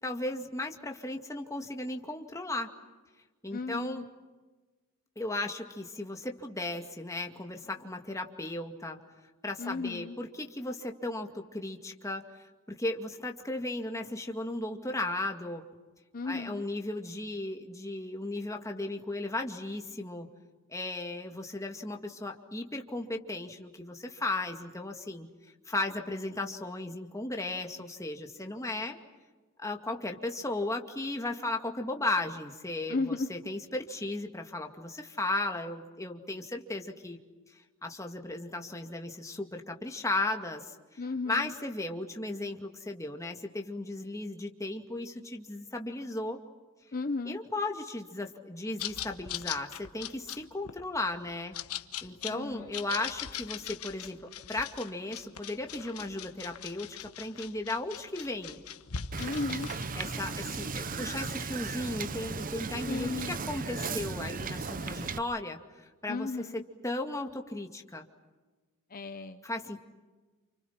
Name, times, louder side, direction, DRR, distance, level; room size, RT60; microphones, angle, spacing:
voice 1, 0.0-2.7 3.4-4.0 5.2-9.0 9.4-12.2 12.7-15.6 16.2-20.3 20.7-25.3 25.7-29.0 29.6-37.2 37.5-41.0 41.3-46.4 47.3-51.6 52.0-54.2 54.5-58.6 60.0-68.1 69.4-69.8, left 2 dB, 15° left, 3 dB, 2.2 m, -36 dB
voice 2, 3.5-4.1 9.6-10.2 16.1-16.6 32.9-33.3 41.0-41.5 46.9-47.4 52.3-52.7 59.2-59.7 62.9-63.4 66.1-66.6 68.9-69.4, left 3 dB, 40° left, 8 dB, 0.8 m, -34 dB
sound 1, 48.8-59.9, left 9 dB, 90° left, 1.2 m, -41 dB
Wind / Boat Water vehicle, 59.1-65.2, right 4 dB, 40° right, 0.8 m, -36 dB
29.5 x 29.0 x 5.9 m, 1.3 s
head